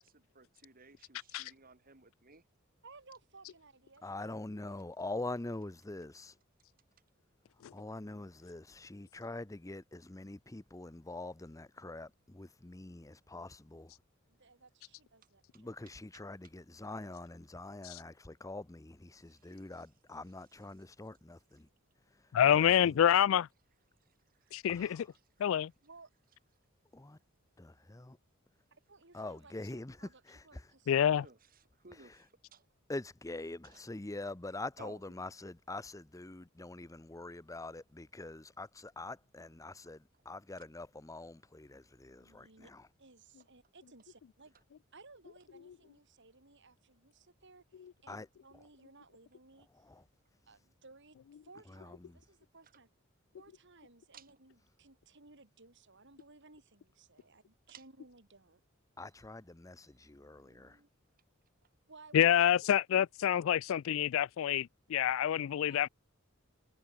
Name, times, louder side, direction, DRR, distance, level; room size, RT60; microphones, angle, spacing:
voice 1, 0.0-2.4 19.2-19.6 24.0-24.1 31.1-32.7 33.7-33.8 34.8-35.0 54.1-54.4 57.7-57.8 60.3-60.9, right 4 dB, 45° right, 2.9 m, -58 dB
voice 2, 2.8-4.3 14.3-15.7 24.4-24.9 25.8-26.1 28.7-29.5 30.0-31.1 42.2-42.7 43.0-44.5 44.9-49.9 50.5-51.2 51.4-52.9 53.3-58.6 61.9-62.7 65.7-65.9, right 3 dB, 60° right, 4.6 m, -59 dB
voice 3, 4.0-6.4 7.7-13.9 15.5-21.7 22.0-23.0 24.7-25.1 26.9-27.2 27.6-28.2 29.1-30.7 31.9-32.3 32.9-42.9 48.1-48.3 49.7-50.0 51.7-52.2 59.0-60.8, left 2 dB, 15° left, 0.7 m, -45 dB
voice 4, 22.3-23.5 24.5-24.9 25.4-25.7 30.9-31.2 62.1-65.9, left 10 dB, 70° left, 0.3 m, -27 dB
head